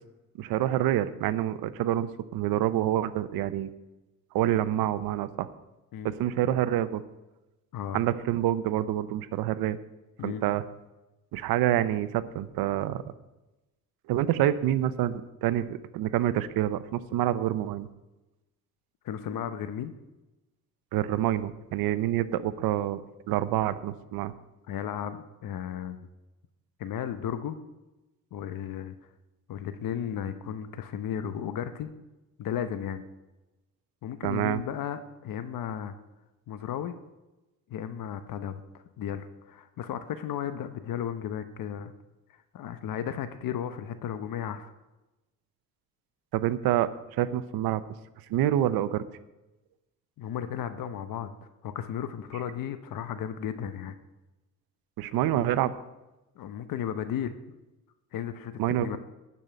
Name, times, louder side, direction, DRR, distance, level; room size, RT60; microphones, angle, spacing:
voice 1, 0.4-3.7 4.3-5.5 6.0-7.0 7.9-9.8 10.2-10.6 11.3-13.0 14.1-17.9 20.9-24.3 34.2-34.6 46.3-46.9 47.2-47.8 48.3-49.0 55.0-55.7 58.6-59.0, right 12 dB, 90° right, 14 dB, 0.7 m, -27 dB
voice 2, 19.0-19.9 24.7-26.0 26.8-27.6 28.3-29.0 29.5-31.9 32.4-33.0 34.0-35.9 36.5-37.0 37.7-41.9 42.5-44.7 50.2-51.3 51.6-54.0 56.4-57.4 58.1-59.0, left 9 dB, 70° left, 10 dB, 0.9 m, -34 dB
12.0 x 5.5 x 9.1 m, 1.0 s
cardioid pair, 95°, 35 cm